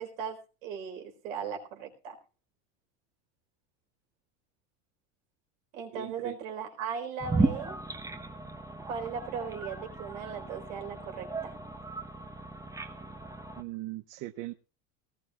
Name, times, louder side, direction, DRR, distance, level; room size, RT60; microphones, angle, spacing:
voice 1, 0.0-2.2 5.7-7.8 8.8-11.6, right 6 dB, 80° right, 3 dB, 4.4 m, -38 dB
voice 2, 5.9-6.3 13.6-14.5, right 17 dB, 50° right, 9 dB, 0.8 m, -39 dB
sound 1, 7.2-13.6, right 3 dB, 10° right, 0.9 m, -35 dB
18.5 x 16.5 x 2.4 m, 0.33 s
supercardioid pair, 125°, 39 cm